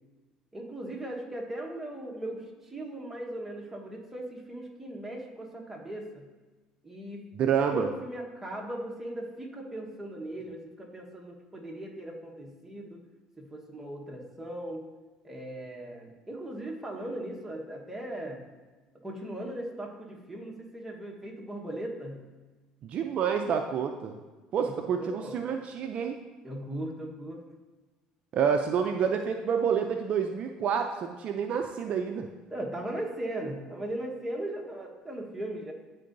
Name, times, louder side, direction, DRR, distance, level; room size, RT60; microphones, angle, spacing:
voice 1, 0.5-6.3 6.8-7.2 7.7-13.0 13.4-14.8 15.2-18.5 19.0-22.2 24.6-24.7 25.0-25.4 26.4-27.5 32.5-35.7, right 1 dB, 10° right, -2 dB, 1.2 m, -38 dB
voice 2, 7.3-7.9 22.8-24.2 24.5-26.2 28.3-32.3, right 7 dB, 50° right, 4 dB, 0.4 m, -28 dB
10.0 x 3.7 x 2.6 m, 1.2 s
supercardioid pair, 90°, 3 cm